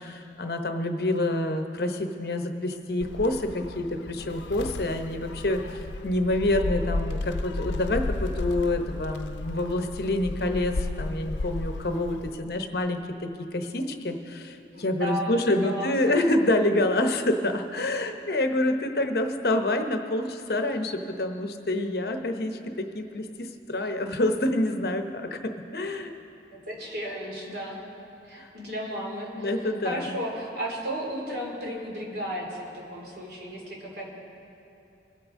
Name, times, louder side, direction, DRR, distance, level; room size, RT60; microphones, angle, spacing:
voice 1, 0.0-26.1 28.4-28.5 29.3-30.1, left 1 dB, 60° left, 6 dB, 0.8 m, -27 dB
Gull seagull, 3.0-12.4, left 2 dB, 90° left, 0.5 m, -33 dB
voice 2, 14.7-16.2 26.5-27.8 28.2-34.1, equal, 65° right, -3 dB, 2.7 m, -34 dB
22.5 x 8.6 x 3.7 m, 2.9 s
head